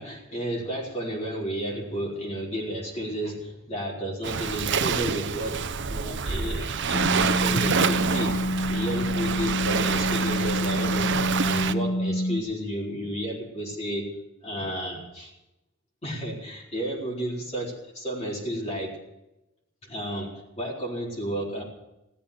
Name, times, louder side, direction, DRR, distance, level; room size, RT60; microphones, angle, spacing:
voice 1, 0.0-5.6 5.9-11.1 11.4-14.1 14.4-15.3 16.0-18.9 19.8-21.6, equal, 30° left, -3 dB, 4.2 m, -32 dB
Waves surf, 4.2-11.7, right 6 dB, 60° right, 0.8 m, -27 dB
sound 1, 6.9-12.4, left 1 dB, 50° left, 1.1 m, -27 dB
16.0 x 13.0 x 6.8 m, 0.89 s
head